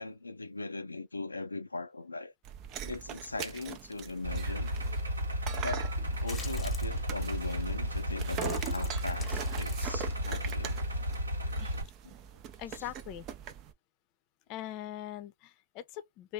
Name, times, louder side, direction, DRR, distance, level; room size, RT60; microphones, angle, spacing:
voice 1, 0.0-2.3 2.8-4.7 5.6-5.9 6.2-10.9 12.0-12.1 12.7-12.8, left 3 dB, 90° left, 0.3 m, -39 dB
sound 1, 2.4-13.7, right 9 dB, 35° right, 0.6 m, -42 dB
Idling, 4.2-11.8, equal, 85° right, 1.2 m, -33 dB
sound 2, 6.3-7.0 7.7-7.9 8.3-10.8, left 4 dB, 15° left, 1.0 m, -46 dB
voice 2, 12.6-13.3 14.5-16.3, left 12 dB, 40° left, 0.6 m, -41 dB
3.2 x 2.5 x 3.4 m
figure-of-eight pair, 110°, 0 cm